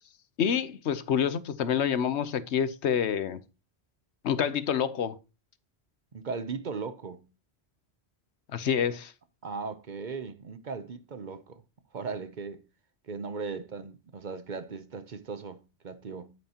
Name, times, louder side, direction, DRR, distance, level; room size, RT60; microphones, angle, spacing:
voice 1, 0.4-3.4 4.2-5.1 8.5-9.1, left 8 dB, 80° left, 1.1 m, -27 dB
voice 2, 6.1-7.3 9.4-11.6 11.9-12.6 13.1-16.3, right 5 dB, 50° right, 0.8 m, -37 dB
9.7 x 8.8 x 2.9 m
omnidirectional pair, 1.1 m